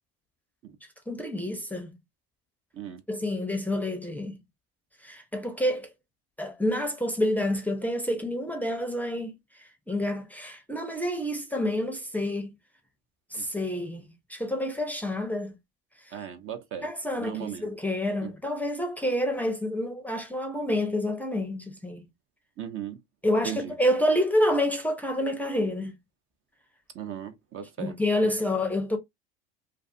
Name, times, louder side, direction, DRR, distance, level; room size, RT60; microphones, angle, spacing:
voice 1, 1.1-1.9 3.1-4.4 5.0-5.9 6.4-12.5 13.3-15.6 16.1-16.2 16.8-22.1 23.2-26.0 27.8-29.0, left 1 dB, 5° left, 0.5 m, -28 dB
voice 2, 16.1-16.9 17.1-17.7 18.2-18.3 22.6-23.0 23.4-23.7 26.9-28.0, right 9 dB, 45° right, 0.6 m, -37 dB
2.4 x 2.4 x 2.4 m
hypercardioid pair, 85°, 30 cm